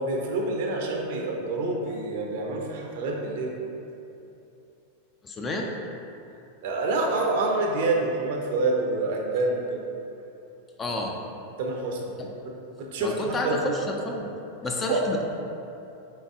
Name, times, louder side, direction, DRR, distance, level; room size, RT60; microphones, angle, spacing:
voice 1, 0.0-3.5 6.6-9.8 11.6-12.0 12.8-13.8 14.9-15.0, right 2 dB, 50° right, 1 dB, 0.6 m, -27 dB
voice 2, 5.2-5.7 10.8-11.2 12.2-12.3 13.0-14.3 14.6-15.2, left 1 dB, 20° left, 1 dB, 0.4 m, -30 dB
4.0 x 3.8 x 3.5 m, 2.8 s
figure-of-eight pair, 90°, 0 cm